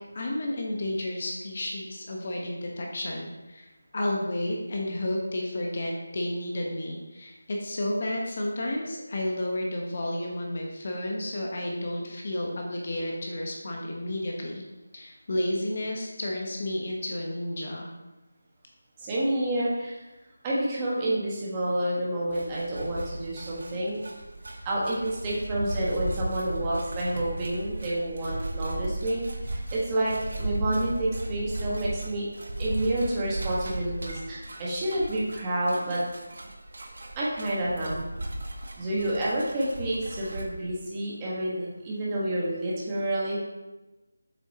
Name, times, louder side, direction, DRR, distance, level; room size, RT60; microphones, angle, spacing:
voice 1, 0.1-3.7 3.9-14.6 14.9-17.9, left 1 dB, 40° left, 0 dB, 1.0 m, -31 dB
voice 2, 19.0-20.0 20.4-24.0 24.6-32.3 32.6-36.0 37.2-38.0 38.8-43.4, right 1 dB, 15° right, -6 dB, 1.3 m, -29 dB
sound 1, 22.3-40.5, right 1 dB, 60° right, 1.1 m, -36 dB
7.7 x 6.0 x 2.8 m, 1.1 s
figure-of-eight pair, 170°, 0 cm